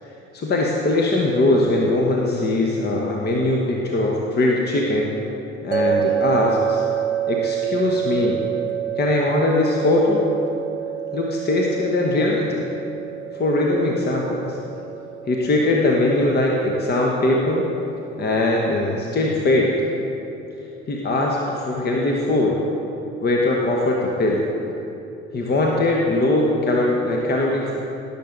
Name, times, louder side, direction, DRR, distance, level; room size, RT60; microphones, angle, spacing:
voice 1, 0.3-5.2 5.6-6.8 7.3-8.4 9.0-10.2 11.1-12.7 13.3-14.6 15.3-17.6 18.2-19.8 20.9-22.6 23.2-24.4 25.3-27.7, left 2 dB, 30° left, -1 dB, 1.2 m, -21 dB
sound 1, 5.7-18.8, right 10 dB, 85° right, 0.6 m, -28 dB
17.0 x 6.9 x 3.9 m, 2.9 s
figure-of-eight pair, 55°, 34 cm